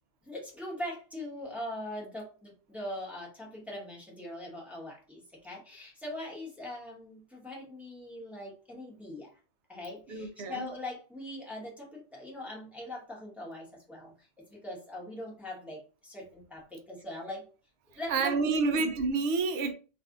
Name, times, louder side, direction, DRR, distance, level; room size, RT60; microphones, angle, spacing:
voice 1, 0.3-9.3 9.7-17.5 17.9-18.9, left 1 dB, ahead, 0.9 m, -41 dB
voice 2, 10.1-10.7 18.1-19.7, right 4 dB, 65° right, 0.8 m, -28 dB
2.6 x 2.5 x 3.6 m
omnidirectional pair, 1.2 m